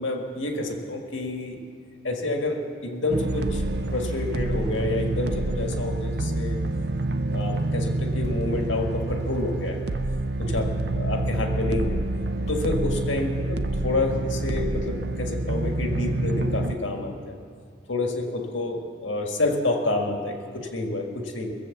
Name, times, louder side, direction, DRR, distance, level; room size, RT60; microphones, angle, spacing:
voice 1, 0.0-1.6 2.0-6.6 7.3-9.9 10.4-12.0 12.5-17.3 17.9-21.5, left 2 dB, 80° left, 2 dB, 1.7 m, -29 dB
sound 1, 3.1-16.8, right 2 dB, 55° right, 0.6 m, -27 dB
sound 2, 8.2-9.3 9.8-9.9 10.5-11.4 12.3-14.8, left 1 dB, 35° left, 1.2 m, -40 dB
22.0 x 7.5 x 7.1 m, 2.2 s
head